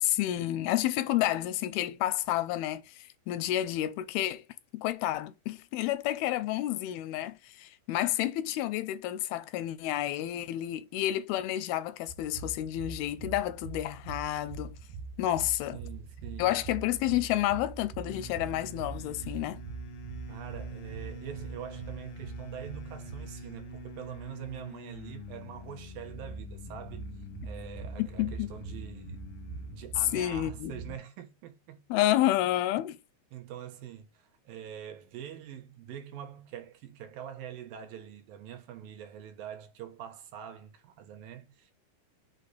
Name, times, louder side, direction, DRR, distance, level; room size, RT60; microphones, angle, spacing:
voice 1, 0.0-4.4 4.7-14.8 15.2-15.8 16.4-19.6 28.0-28.5 30.1-31.0 31.9-33.0, left 13 dB, 85° left, 2.5 m, -30 dB
sound 1, 12.1-31.0, right 4 dB, 90° right, 1.7 m, -44 dB
voice 2, 15.7-16.5 20.3-27.1 27.4-29.4 29.7-31.8 33.3-41.7, right 10 dB, 70° right, 2.8 m, -44 dB
sound 2, 18.0-29.9, left 1 dB, 70° left, 1.4 m, -46 dB
6.6 x 3.7 x 3.9 m
omnidirectional pair, 4.5 m